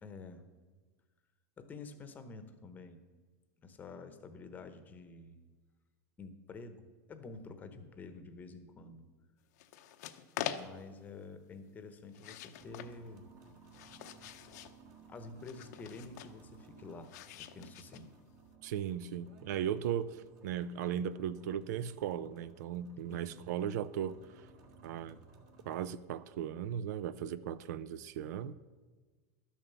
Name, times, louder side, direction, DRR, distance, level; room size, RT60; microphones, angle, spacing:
voice 1, 0.0-0.4 1.6-3.0 3.6-5.4 6.2-9.1 10.4-13.2 15.1-17.1 17.4-18.1 23.0-23.4, left 3 dB, 20° left, 9 dB, 0.9 m, -49 dB
sound 1, 9.6-11.0 12.1-12.9 13.5-14.8 15.4-16.4 17.0-18.3, left 11 dB, 70° left, 0.8 m, -44 dB
sound 2, 12.6-25.9, right 4 dB, 40° right, 1.6 m, -59 dB
voice 2, 18.6-20.2 20.4-24.2 24.8-25.2 25.7-28.5, right 9 dB, 75° right, 16 dB, 0.5 m, -37 dB
12.0 x 7.3 x 6.9 m, 1.3 s
supercardioid pair, 155°, 9 cm